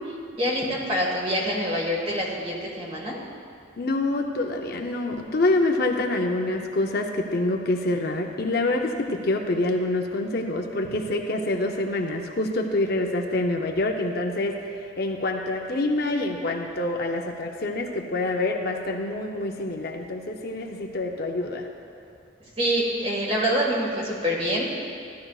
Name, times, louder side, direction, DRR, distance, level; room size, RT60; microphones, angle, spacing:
voice 1, 0.4-3.2 22.6-24.7, equal, 30° right, -3 dB, 1.7 m, -25 dB
voice 2, 3.8-21.7, left 2 dB, 50° left, 2 dB, 0.6 m, -26 dB
15.0 x 11.5 x 2.4 m, 2.4 s
head